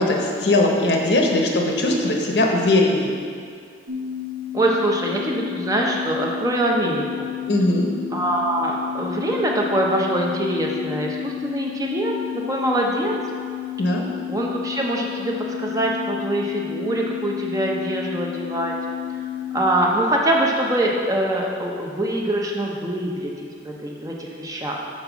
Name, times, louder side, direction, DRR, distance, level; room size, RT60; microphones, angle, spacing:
voice 1, 0.0-3.1 7.5-7.9 13.8-14.0, left 2 dB, 70° left, 0 dB, 0.8 m, -19 dB
sound 1, 3.9-19.6, left 12 dB, 65° right, 0.6 m, -31 dB
voice 2, 4.5-7.3 8.1-13.2 14.3-18.7 19.5-25.0, right 1 dB, 20° right, -1 dB, 0.6 m, -24 dB
5.3 x 4.5 x 6.0 m, 2.2 s
head